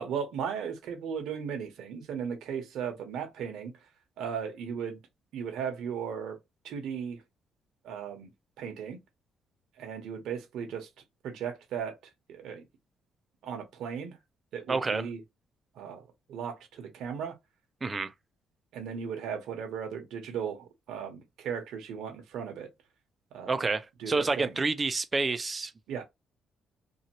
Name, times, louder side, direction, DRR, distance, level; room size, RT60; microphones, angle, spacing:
voice 1, 0.0-3.8 4.2-5.0 5.3-6.4 6.6-7.2 7.8-8.3 8.6-9.0 9.8-10.9 11.2-12.0 12.3-12.6 13.4-14.2 14.5-15.2 15.7-16.0 16.3-17.3 18.7-22.7 23.3-23.7 24.0-24.5 25.9-26.0, right 7 dB, 80° right, 0.9 m, -36 dB
voice 2, 14.7-15.1 17.8-18.1 23.5-25.7, right 3 dB, 30° right, 0.5 m, -29 dB
2.7 x 2.5 x 2.9 m
cardioid pair, 90°, 0 cm